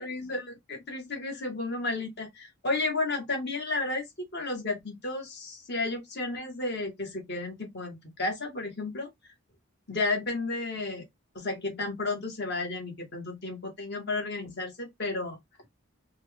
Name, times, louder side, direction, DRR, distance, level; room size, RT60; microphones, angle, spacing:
voice 1, 0.0-4.0 4.3-9.3 9.9-11.0 11.3-15.4, left 2 dB, 50° left, 1.4 m, -32 dB
4.2 x 2.3 x 3.4 m
head